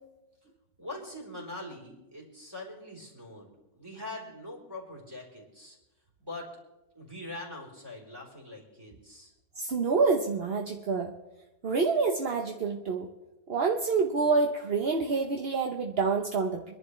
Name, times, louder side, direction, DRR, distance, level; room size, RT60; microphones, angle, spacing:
voice 1, 0.8-5.8 6.2-6.5 7.0-9.3, left 2 dB, 10° right, -4 dB, 3.7 m, -43 dB
voice 2, 9.6-11.1 11.6-13.1 13.5-16.6, right 4 dB, 45° right, 2 dB, 0.9 m, -27 dB
26.0 x 11.0 x 3.2 m, 1.0 s
omnidirectional pair, 1.9 m